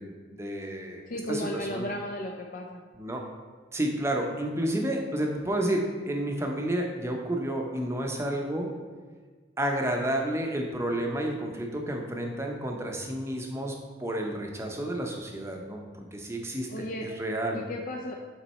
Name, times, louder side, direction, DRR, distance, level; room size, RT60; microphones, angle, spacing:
voice 1, 0.0-1.0 1.3-1.9 3.0-3.2 3.7-8.7 9.6-17.6, right 1 dB, 15° right, 1 dB, 0.7 m, -31 dB
voice 2, 1.0-2.8 16.7-17.1 17.5-18.1, left 1 dB, 45° left, 1 dB, 0.5 m, -35 dB
8.3 x 4.0 x 4.2 m, 1.5 s
head